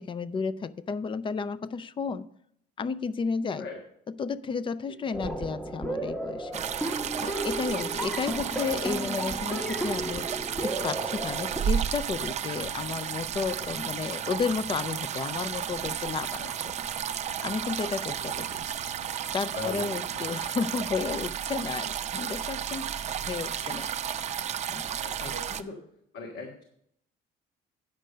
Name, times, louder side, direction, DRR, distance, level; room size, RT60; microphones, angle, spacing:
voice 1, 0.0-2.3 2.8-3.7 4.1-16.7 17.4-18.9 19.3-23.9 24.7-24.9 25.2-25.3, left 5 dB, 30° left, 16 dB, 0.4 m, -33 dB
sound 1, 5.1-11.6, right 1 dB, 5° left, 0.9 m, -34 dB
sound 2, 6.5-25.6, right 9 dB, 40° right, 0.5 m, -33 dB
voice 2, 19.5-20.1 25.0-25.8 26.1-26.6, left 3 dB, 85° left, 0 dB, 1.5 m, -40 dB
9.2 x 5.1 x 6.6 m, 0.70 s
cardioid pair, 110°, 17 cm